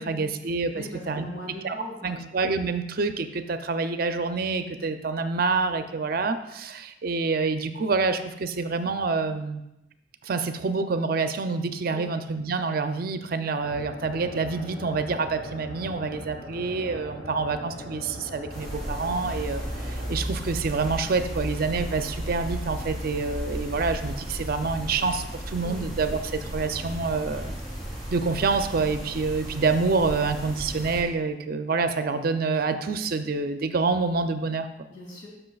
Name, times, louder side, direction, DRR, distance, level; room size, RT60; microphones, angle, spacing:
voice 1, 0.0-1.3 1.6-1.8 2.0-9.6 10.2-27.5 28.1-34.9, right 4 dB, 50° right, 9 dB, 0.5 m, -27 dB
voice 2, 0.7-2.2 11.9-12.0 25.6-25.8 34.9-35.3, left 1 dB, 80° left, -3 dB, 2.7 m, -40 dB
sound 1, 13.6-20.1, equal, 40° left, 2.7 m, -40 dB
sound 2, 18.5-31.0, equal, ahead, 2.6 m, -34 dB
12.5 x 6.0 x 2.3 m, 0.88 s
head